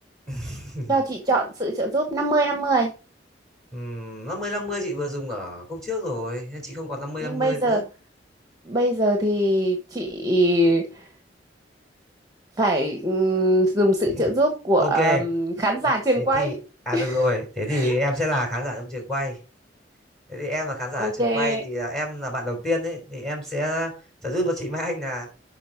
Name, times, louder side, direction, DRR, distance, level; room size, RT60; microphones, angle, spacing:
voice 1, 0.3-1.0 3.7-7.9 14.1-14.2 14.8-15.2 15.8-16.6 16.9-19.4 20.3-23.9 24.2-25.3, left 1 dB, 5° left, 2 dB, 3.7 m, -28 dB
voice 2, 0.9-2.9 7.2-7.8 8.6-11.1 12.6-16.5 16.9-17.2 17.7-17.9 21.0-21.6, right 1 dB, 20° right, 4 dB, 1.1 m, -22 dB
7.6 x 5.7 x 4.9 m, 0.34 s
head